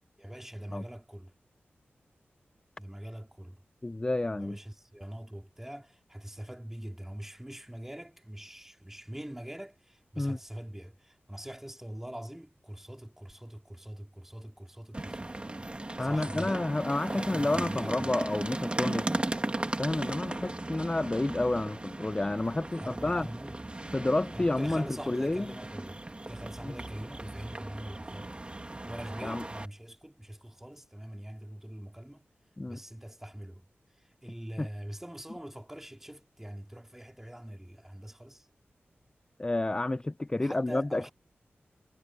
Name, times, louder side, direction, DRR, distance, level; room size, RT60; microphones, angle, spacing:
voice 1, 0.2-1.3 2.8-3.6 4.3-15.3 16.0-16.7 17.1-18.0 22.8-23.6 24.3-26.0 26.3-28.5 28.8-32.3 32.7-33.6 34.2-38.5 40.3-41.1, right 1 dB, 10° right, 2.6 m, -43 dB
voice 2, 3.8-4.6 10.2-10.4 16.0-19.1 19.8-23.3 23.9-25.5 26.6-26.7 29.2-29.5 32.6-32.8 34.6-34.7 39.4-41.1, left 2 dB, 20° left, 0.4 m, -30 dB
sound 1, 14.9-29.7, right 2 dB, 25° right, 1.8 m, -37 dB
wide cardioid pair, 75°, 4 cm